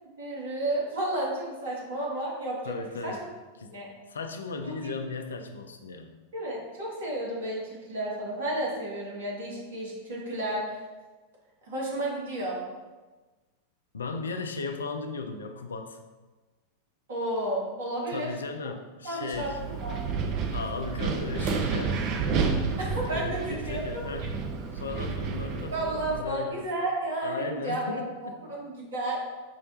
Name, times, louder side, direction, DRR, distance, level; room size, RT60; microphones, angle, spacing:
voice 1, 0.2-3.1 3.7-3.9 4.6-4.9 6.3-10.8 11.6-12.6 17.1-18.3 19.0-20.2 22.8-24.1 25.5-28.0 28.5-29.2, right 1 dB, 60° right, -5 dB, 1.2 m, -32 dB
voice 2, 2.6-3.2 3.6-3.7 4.1-6.1 13.9-16.0 18.1-19.6 20.5-22.1 23.0-24.4 24.7-26.6 27.2-28.4, left 4 dB, 70° left, 6 dB, 0.3 m, -36 dB
Wind, 19.3-26.2, right 5 dB, 35° right, 0.4 m, -30 dB
5.3 x 2.1 x 2.8 m, 1.2 s
figure-of-eight pair, 90°, 0 cm